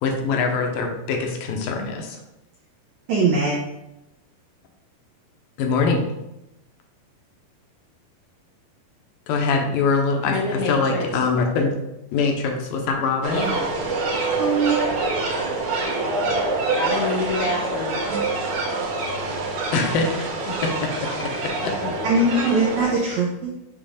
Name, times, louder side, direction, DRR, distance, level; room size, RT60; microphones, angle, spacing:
voice 1, 0.0-2.2 5.6-6.0 9.3-11.7 12.1-13.5 19.7-20.1 20.8-20.9 21.2-21.3 21.6-21.7, left 4 dB, 75° left, 3 dB, 2.3 m, -23 dB
voice 2, 3.1-3.6 14.4-14.8 18.1-18.2 22.0-23.5, right 3 dB, 85° right, -2 dB, 1.6 m, -21 dB
voice 3, 10.2-11.1 13.3-13.7 16.7-18.0, left 2 dB, 90° left, -4 dB, 3.7 m, -26 dB
sound 1, 13.2-22.9, right 3 dB, 65° right, 2.0 m, -26 dB
7.5 x 3.0 x 5.0 m, 0.91 s
omnidirectional pair, 4.3 m